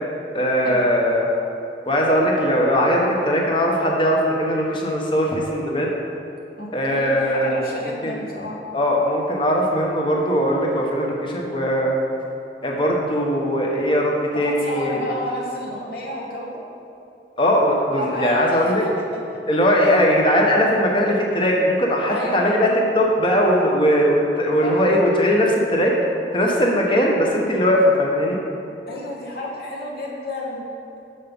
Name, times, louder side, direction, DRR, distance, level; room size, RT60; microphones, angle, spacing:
voice 1, 0.3-1.3 1.8-5.9 6.7-7.6 8.0-8.2 8.7-12.0 12.6-15.0 17.4-18.8 19.5-22.7 22.9-25.9 26.3-28.4, equal, 30° left, -1 dB, 1.0 m, -19 dB
voice 2, 6.6-8.6 14.3-16.6 17.9-18.9 19.3-19.4 22.1-22.6 24.6-24.8 28.9-30.7, left 1 dB, 55° left, -4 dB, 1.1 m, -31 dB
6.9 x 5.4 x 5.3 m, 2.8 s
head